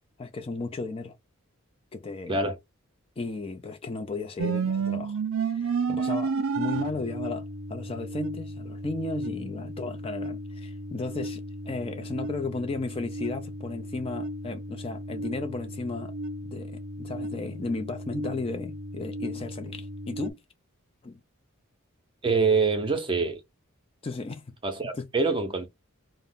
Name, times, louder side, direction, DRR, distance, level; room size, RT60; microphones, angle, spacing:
voice 1, 0.2-1.1 1.9-2.4 3.2-5.2 5.5-16.1 16.4-20.4 21.0-21.2 24.0-24.5 24.9-25.1, left 3 dB, 25° left, 0.3 m, -35 dB
sound 1, 4.4-20.3, right 3 dB, 70° right, 0.4 m, -33 dB
voice 2, 22.2-23.4 24.6-25.7, right 4 dB, 25° right, 0.6 m, -25 dB
2.5 x 2.0 x 3.5 m
head